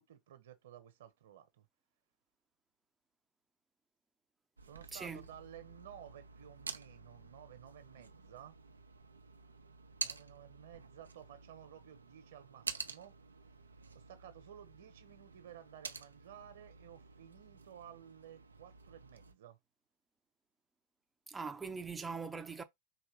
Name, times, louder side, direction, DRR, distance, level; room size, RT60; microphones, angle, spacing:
voice 1, 0.0-1.7 4.6-8.6 10.0-13.2 13.9-19.6, right 10 dB, 65° right, 1.1 m, -55 dB
sound 1, 4.6-19.3, right 4 dB, 85° right, 0.6 m, -49 dB
voice 2, 4.9-5.2 21.3-22.6, right 4 dB, 15° right, 0.7 m, -41 dB
5.0 x 3.1 x 3.2 m
hypercardioid pair, 95°, 0 cm